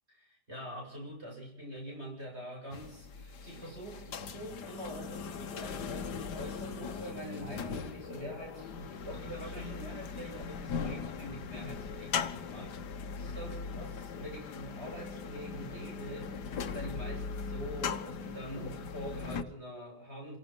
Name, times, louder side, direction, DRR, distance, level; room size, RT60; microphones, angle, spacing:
voice 1, 0.2-20.4, right 1 dB, 40° right, -1 dB, 8.2 m, -44 dB
sound 1, 2.7-19.4, left 6 dB, 85° left, 1.8 m, -39 dB
27.0 x 17.0 x 6.0 m, 0.67 s
omnidirectional pair, 1.7 m